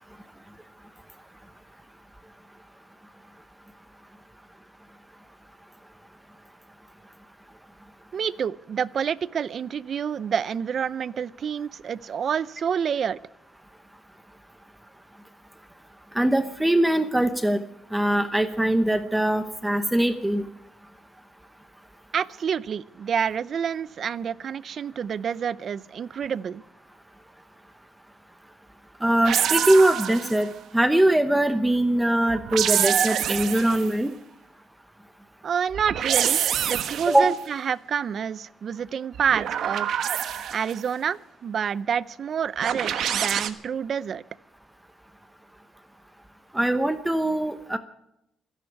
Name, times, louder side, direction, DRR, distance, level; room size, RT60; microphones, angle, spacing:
voice 1, 8.1-13.2 22.1-26.6 35.4-39.9 40.5-44.2, right 7 dB, 50° right, 19 dB, 0.5 m, -28 dB
voice 2, 16.1-17.6 17.9-20.4 29.0-30.5 30.7-34.1 37.1-37.3 46.5-47.8, right 1 dB, 5° right, 9 dB, 0.9 m, -22 dB
sound 1, 29.2-30.5 32.3-33.9 35.7-37.3 39.1-40.8 42.6-43.5, right 9 dB, 70° right, 1.2 m, -26 dB
27.0 x 11.0 x 4.7 m, 0.82 s
cardioid pair, 130°, 0 cm